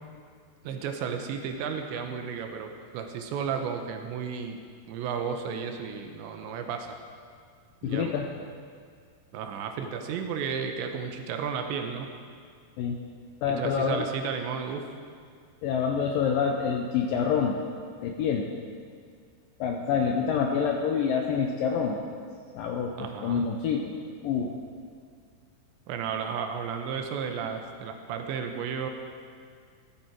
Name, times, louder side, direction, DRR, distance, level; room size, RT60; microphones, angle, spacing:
voice 1, 0.6-4.6 4.9-6.9 7.8-8.1 9.3-12.1 13.5-14.9 23.0-23.5 25.9-28.9, right 6 dB, 80° right, 5 dB, 3.2 m, -33 dB
voice 2, 7.8-8.3 12.8-13.0 13.4-14.0 15.6-17.6 18.0-18.5 19.6-22.0 22.5-23.9 24.2-24.5, left 6 dB, 90° left, 1 dB, 1.9 m, -27 dB
16.0 x 13.5 x 4.6 m, 2.1 s
omnidirectional pair, 5.2 m